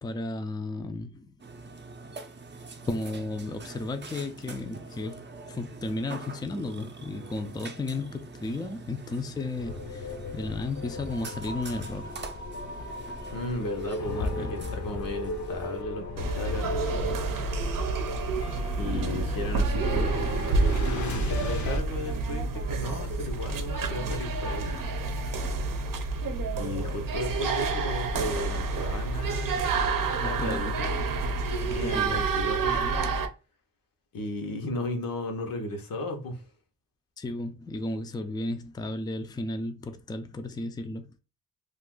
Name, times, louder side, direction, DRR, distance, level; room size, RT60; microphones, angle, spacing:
voice 1, 0.0-1.4 2.9-5.2 5.5-12.2 14.0-14.7 18.8-19.2 30.2-30.7 31.7-32.3 37.2-41.1, left 2 dB, 15° left, 0.4 m, -34 dB
Burping eructation, 1.4-15.8, right 3 dB, 35° right, 0.5 m, -45 dB
sound 1, 9.6-21.8, left 2 dB, 60° left, 0.6 m, -36 dB
voice 2, 13.3-17.2 18.8-24.9 26.6-29.7 30.2-31.4 31.7-33.0 34.1-36.5, left 1 dB, 85° left, 0.9 m, -35 dB
sound 2, 16.2-33.3, right 3 dB, 75° right, 0.6 m, -29 dB
2.5 x 2.4 x 3.6 m
wide cardioid pair, 100°, 33 cm